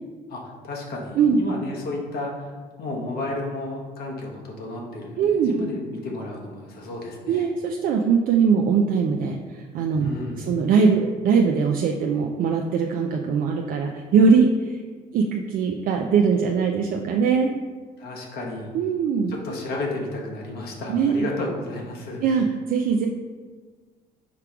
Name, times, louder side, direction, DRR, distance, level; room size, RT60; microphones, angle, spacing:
voice 1, 0.3-7.5 10.0-10.4 18.0-18.7 19.3-22.2, left 2 dB, 60° left, -1 dB, 1.1 m, -32 dB
voice 2, 5.2-5.5 7.3-10.1 10.4-14.8 15.1-17.5 18.7-19.3 20.9-21.1 22.2-23.1, right 5 dB, 50° right, 2 dB, 0.4 m, -21 dB
4.7 x 2.3 x 4.6 m, 1.5 s
supercardioid pair, 70°, 18 cm